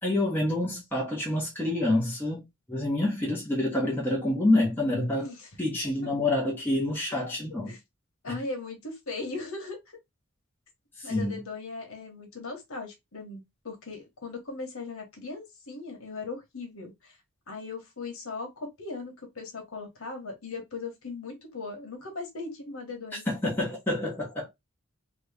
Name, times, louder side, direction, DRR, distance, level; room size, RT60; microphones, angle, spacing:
voice 1, 0.0-5.3 5.6-7.7 8.3-8.4 11.0-11.4 23.3-24.5, left 1 dB, 10° left, 1.1 m, -27 dB
voice 2, 5.1-5.5 7.7-7.8 8.2-9.8 11.0-17.2 17.5-23.2, left 3 dB, 75° left, 1.3 m, -38 dB
3.0 x 2.6 x 3.4 m
head